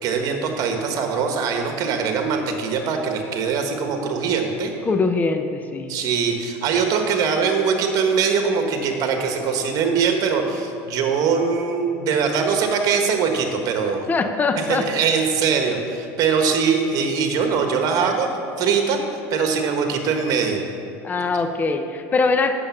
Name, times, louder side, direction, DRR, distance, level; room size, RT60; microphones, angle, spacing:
voice 1, 0.0-4.7 5.9-14.1 14.6-18.3 18.6-19.0 19.3-20.6, right 5 dB, 50° right, 4 dB, 1.5 m, -22 dB
voice 2, 4.9-5.9 14.1-14.9 21.0-22.5, left 4 dB, 20° left, 7 dB, 0.6 m, -22 dB
8.7 x 6.9 x 7.1 m, 2.8 s
supercardioid pair, 110°, 8 cm